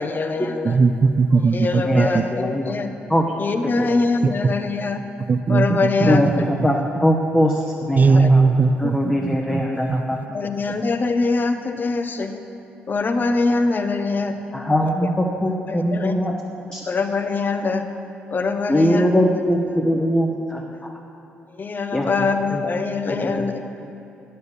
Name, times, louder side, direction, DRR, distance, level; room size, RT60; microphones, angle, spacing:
voice 1, 0.0-0.8 1.5-2.9 3.4-5.0 5.5-6.5 8.2-8.3 10.3-12.4 12.9-14.4 14.8-15.1 15.7-16.3 16.8-17.8 18.3-19.3 21.5-23.6, left 3 dB, 40° left, 8 dB, 0.9 m, -23 dB
voice 2, 0.6-2.2 5.3-6.7 8.0-10.0, right 4 dB, 35° right, 12 dB, 0.5 m, -19 dB
voice 3, 1.8-2.7 3.1-3.3 3.8-3.9 6.1-8.5 8.8-10.5 14.5-16.3 16.6-16.8 18.7-20.6 21.9-22.6 23.2-23.5, equal, 15° left, 0 dB, 1.0 m, -22 dB
9.6 x 6.8 x 6.6 m, 2.9 s
hypercardioid pair, 50°, 5 cm